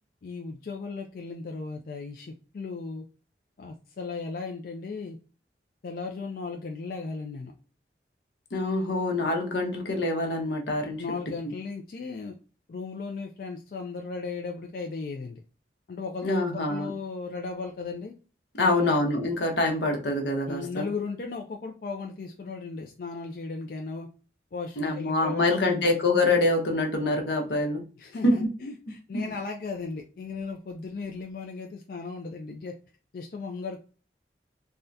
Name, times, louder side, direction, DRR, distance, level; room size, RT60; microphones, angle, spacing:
voice 1, 0.2-3.0 3.6-5.2 5.8-7.5 11.0-12.3 12.7-15.4 15.9-18.1 18.6-19.0 20.5-24.1 24.5-25.8 28.0-32.8 33.1-33.8, left 4 dB, 50° left, 2 dB, 0.3 m, -36 dB
voice 2, 8.5-11.0 16.2-16.9 18.5-20.9 24.8-27.8 28.2-28.3 29.1-29.3, left 2 dB, 80° left, 3 dB, 0.9 m, -25 dB
3.5 x 2.1 x 2.6 m, 0.36 s
head